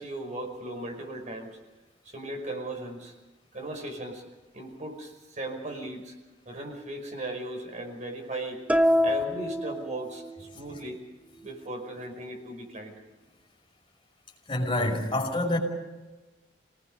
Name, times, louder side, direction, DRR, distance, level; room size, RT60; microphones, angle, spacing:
voice 1, 0.0-1.6 2.1-3.1 3.5-4.2 4.5-6.1 6.5-8.6 9.0-11.0 11.4-12.9, right 1 dB, 40° right, 3 dB, 5.3 m, -37 dB
sound 1, 8.7-10.5, left 1 dB, 5° right, 0.9 m, -25 dB
voice 2, 14.5-15.6, left 1 dB, 30° left, 0 dB, 5.6 m, -27 dB
27.5 x 19.5 x 5.5 m, 1.2 s
head